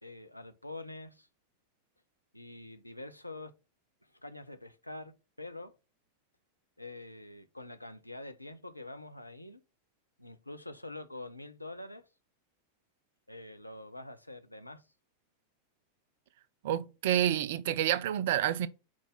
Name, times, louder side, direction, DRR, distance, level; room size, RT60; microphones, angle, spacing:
voice 1, 0.0-1.3 2.3-3.5 4.2-5.7 6.8-9.6 10.2-12.0 13.3-14.8, left 2 dB, 85° left, 0.7 m, -45 dB
voice 2, 16.6-18.7, right 11 dB, 55° right, 0.5 m, -28 dB
6.1 x 4.0 x 5.7 m
figure-of-eight pair, 90°, 0 cm